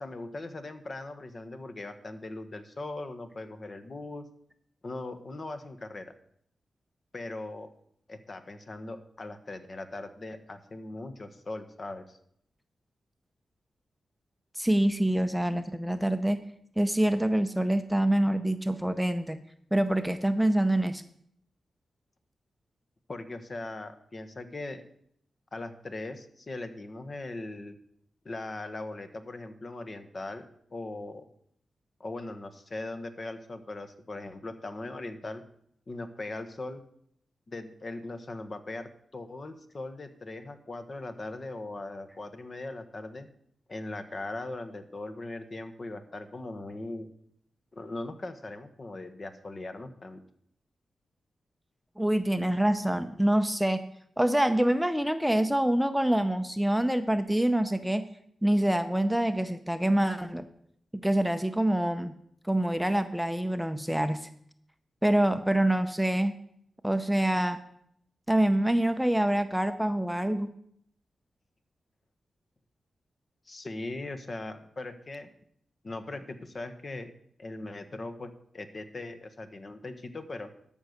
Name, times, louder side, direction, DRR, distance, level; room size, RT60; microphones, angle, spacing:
voice 1, 0.0-4.3 4.8-6.1 7.1-7.7 8.1-12.2 23.1-24.8 25.5-27.8 28.2-30.5 30.7-31.3 32.0-35.4 35.9-36.8 37.5-43.3 43.7-47.1 47.7-50.2 73.5-75.3 75.8-77.1 77.4-80.5, left 2 dB, 45° left, 8 dB, 1.1 m, -39 dB
voice 2, 14.6-16.4 16.8-19.4 19.7-21.0 52.0-53.8 54.2-58.0 58.4-60.5 60.9-62.1 62.4-64.3 65.0-66.3 66.8-67.6 68.3-70.5, right 1 dB, 5° right, 9 dB, 0.6 m, -26 dB
13.0 x 5.4 x 6.5 m, 0.70 s
cardioid pair, 75°, 0 cm